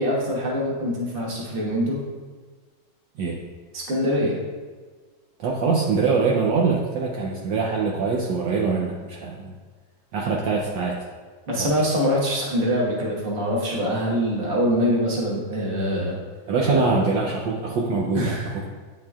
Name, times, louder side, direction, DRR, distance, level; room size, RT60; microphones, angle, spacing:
voice 1, 0.0-2.0 3.7-4.3 11.5-16.2 16.6-16.9 17.2-17.4 18.1-18.5, equal, 30° right, -4 dB, 1.3 m, -24 dB
voice 2, 5.4-9.5 10.1-11.1 11.6-11.7 16.5-18.7, right 4 dB, 70° right, -2 dB, 1.3 m, -23 dB
9.3 x 4.5 x 2.3 m, 1.4 s
omnidirectional pair, 2.3 m